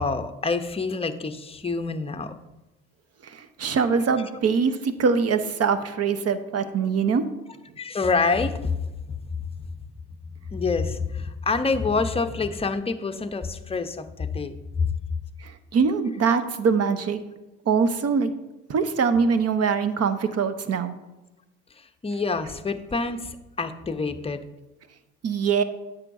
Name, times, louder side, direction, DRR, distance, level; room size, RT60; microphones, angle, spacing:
voice 1, 0.0-2.4 7.8-9.5 10.5-14.9 21.7-24.4, left 4 dB, 15° left, 8 dB, 0.7 m, -27 dB
voice 2, 3.2-7.2 15.4-17.2 17.7-18.3 18.7-20.9 25.2-25.6, right 5 dB, 50° right, 11 dB, 0.9 m, -23 dB
9.7 x 7.1 x 2.6 m, 1.0 s
supercardioid pair, 70°, 33 cm